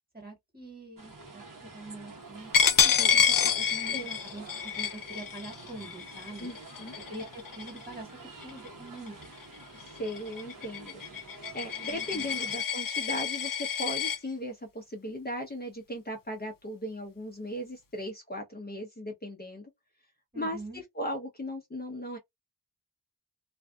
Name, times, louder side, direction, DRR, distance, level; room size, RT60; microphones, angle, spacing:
voice 1, 0.1-1.4 1.7-2.5 2.8-6.5 6.9-8.1 8.4-9.2 11.9-12.3 20.3-20.8, right 1 dB, 25° right, 1.6 m, -44 dB
sound 1, 1.0-12.5, right 3 dB, 55° right, 1.0 m, -48 dB
Coin (dropping), 2.5-7.9 8.4-8.7 9.1-14.2, left 7 dB, 65° left, 0.5 m, -28 dB
voice 2, 6.4-6.9 9.7-11.0 11.5-19.7 20.4-20.6 21.0-22.2, equal, 25° left, 0.8 m, -37 dB
2.5 x 2.4 x 2.3 m
wide cardioid pair, 65°, 37 cm